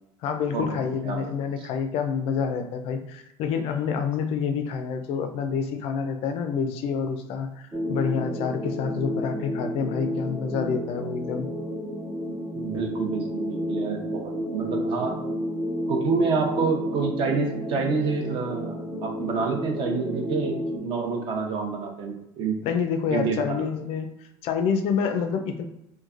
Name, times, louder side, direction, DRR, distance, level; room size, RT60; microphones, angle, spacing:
voice 1, 0.2-11.5 22.6-24.1 24.4-25.6, left 6 dB, 55° left, 7 dB, 0.4 m, -28 dB
sound 1, 7.7-20.8, equal, 10° right, 0.4 m, -31 dB
voice 2, 12.5-15.2 15.9-22.6 23.1-23.6, right 4 dB, 50° right, 2 dB, 0.7 m, -28 dB
3.1 x 2.2 x 2.4 m, 0.86 s
cardioid pair, 130°, 12 cm